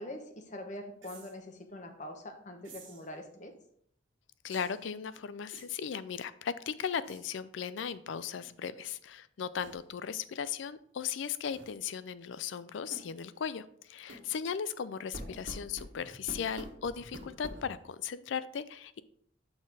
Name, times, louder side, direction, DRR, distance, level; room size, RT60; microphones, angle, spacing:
voice 1, 0.0-3.5 15.2-15.4, left 1 dB, 40° left, 5 dB, 1.0 m, -44 dB
sound 1, 1.0-1.3 2.6-3.1 4.5-4.8 5.5-5.9 7.0-7.2 7.9-8.1 8.4-8.5 9.6-9.8 11.5-11.7 12.9-13.1 14.1-14.3 15.1-17.8, right 1 dB, 80° right, 1.5 m, -47 dB
voice 2, 4.4-19.0, left 7 dB, 75° left, 15 dB, 0.4 m, -37 dB
5.9 x 4.3 x 4.8 m, 0.66 s
head